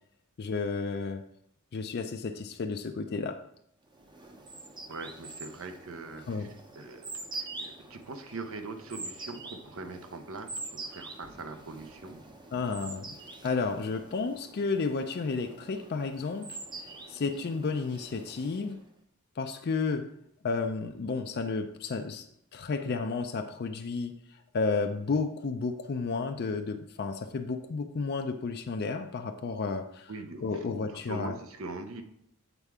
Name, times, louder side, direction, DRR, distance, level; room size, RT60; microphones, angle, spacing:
voice 1, 0.4-1.2 1.7-3.4 6.3-6.5 12.5-13.2 13.4-16.6 17.1-18.8 19.4-20.1 20.4-30.1 30.4-31.3, left 4 dB, 50° left, 6 dB, 0.4 m, -32 dB
sound 1, 3.9-18.9, right 2 dB, 20° right, 0.7 m, -45 dB
voice 2, 4.9-12.2 30.1-30.6 30.9-32.0, right 3 dB, 70° right, 7 dB, 0.7 m, -42 dB
8.1 x 4.5 x 3.6 m, 0.75 s
head